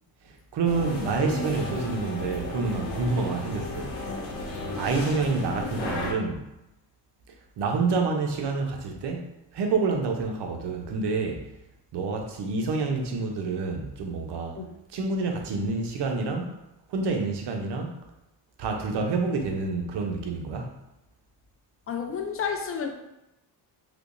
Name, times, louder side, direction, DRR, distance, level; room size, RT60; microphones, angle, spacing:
voice 1, 0.2-3.9 4.8-6.4 7.6-9.3 9.5-11.5 11.9-14.6 14.9-16.6 16.9-17.9 18.6-20.8, right 4 dB, 60° right, 3 dB, 0.8 m, -28 dB
sound 1, 0.6-6.1, left 2 dB, 75° left, 0.9 m, -34 dB
voice 2, 21.9-22.9, left 6 dB, 30° left, 4 dB, 0.5 m, -30 dB
3.5 x 2.8 x 2.6 m, 0.92 s
cardioid pair, 95°, 45 cm